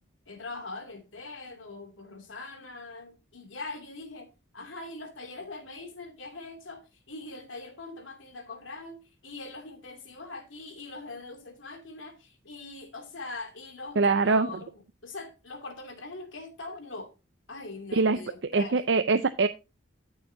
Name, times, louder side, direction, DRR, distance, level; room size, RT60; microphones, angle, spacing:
voice 1, 0.3-17.1 17.5-18.8, left 3 dB, 85° left, 2.6 m, -42 dB
voice 2, 14.0-14.6 17.9-19.5, right 4 dB, 70° right, 0.5 m, -24 dB
13.0 x 6.8 x 2.7 m
head